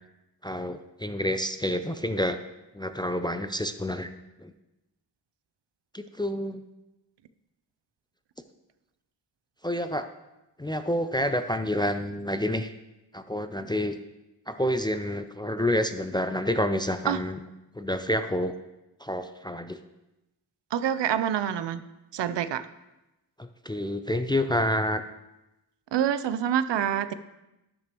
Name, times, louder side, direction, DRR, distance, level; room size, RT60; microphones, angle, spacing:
voice 1, 0.4-2.4 2.7-4.1 4.4-4.5 5.9-6.6 9.6-10.1 10.6-12.7 13.1-13.9 14.5-17.4 17.8-18.5 19.0-19.8 23.4-25.0, left 1 dB, 10° left, 9 dB, 0.4 m, -28 dB
voice 2, 20.7-21.8 22.1-22.6 25.9-27.1, right 10 dB, 75° right, 13 dB, 0.6 m, -26 dB
12.0 x 6.3 x 3.0 m, 0.96 s
cardioid pair, 75°, 42 cm